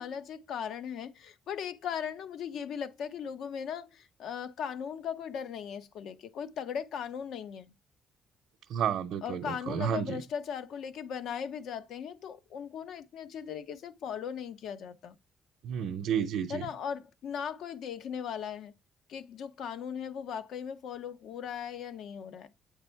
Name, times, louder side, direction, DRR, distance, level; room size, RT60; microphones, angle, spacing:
voice 1, 0.0-7.7 9.2-15.2 16.5-18.7 19.1-22.5, left 7 dB, 75° left, 0.8 m, -38 dB
voice 2, 8.7-10.2 15.6-16.6, right 8 dB, 75° right, 0.6 m, -31 dB
8.4 x 3.5 x 4.4 m
cardioid pair, 130°, 0 cm